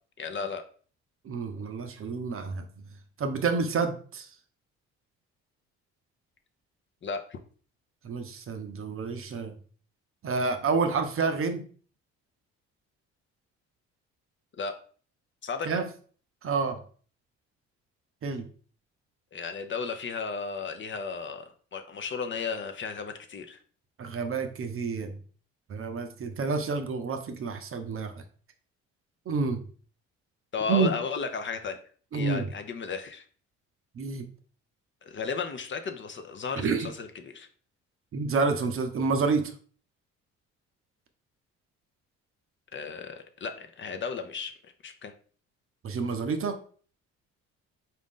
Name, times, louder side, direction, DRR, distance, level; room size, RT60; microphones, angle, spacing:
voice 1, 0.2-0.6 7.0-7.4 14.6-14.8 15.4-15.7 19.3-23.6 30.5-31.8 32.1-33.2 35.0-37.5 42.7-44.5 44.8-45.1, left 5 dB, 40° left, 6 dB, 0.6 m, -34 dB
voice 2, 1.2-2.7 3.2-4.3 8.0-9.5 10.2-11.6 15.7-15.9 16.4-16.8 18.2-18.4 24.0-25.1 25.7-28.1 29.3-29.6 30.7-30.9 32.1-32.5 33.9-34.3 36.5-36.9 38.1-39.5 45.8-46.6, right 4 dB, 45° right, 7 dB, 0.6 m, -29 dB
4.0 x 2.5 x 3.6 m, 0.43 s
supercardioid pair, 65°, 32 cm